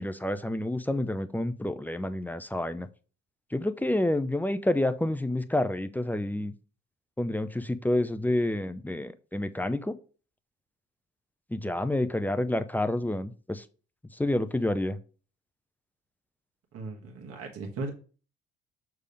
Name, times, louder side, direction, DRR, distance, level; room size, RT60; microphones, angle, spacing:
voice 1, 0.0-2.9 3.5-6.5 7.2-10.0 11.5-13.6 14.2-15.0, left 1 dB, 5° left, 11 dB, 0.6 m, -29 dB
voice 2, 16.7-17.9, right 3 dB, 45° right, 1 dB, 1.5 m, -37 dB
6.6 x 3.6 x 5.0 m, 0.37 s
hypercardioid pair, 55°, 32 cm